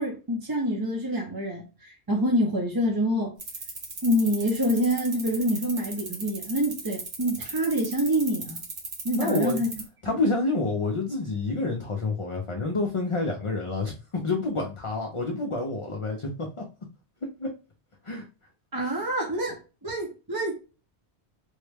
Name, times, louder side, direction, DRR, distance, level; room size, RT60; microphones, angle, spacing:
voice 1, 0.0-3.4 4.0-8.6 9.0-9.7 10.1-10.2 18.7-20.5, equal, 25° right, 0.5 m, -26 dB
sound 1, 3.4-9.9, right 3 dB, 50° right, 1.0 m, -36 dB
voice 2, 9.1-9.6 10.0-16.7 17.4-17.5 18.0-18.2, left 3 dB, 40° left, 0.4 m, -28 dB
3.5 x 2.1 x 3.3 m
omnidirectional pair, 1.1 m